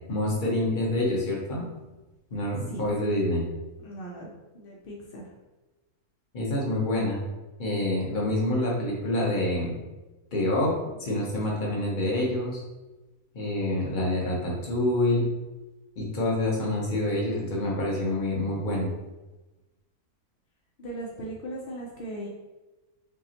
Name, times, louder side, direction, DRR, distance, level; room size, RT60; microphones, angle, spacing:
voice 1, 0.1-1.6 2.3-3.4 6.3-7.2 7.6-9.7 10.3-12.6 13.3-15.3 16.0-18.9, left 1 dB, 40° left, -3 dB, 0.9 m, -27 dB
voice 2, 3.8-5.3 20.8-22.3, right 1 dB, 65° left, -3 dB, 0.5 m, -38 dB
5.6 x 2.1 x 2.8 m, 1.1 s
omnidirectional pair, 1.6 m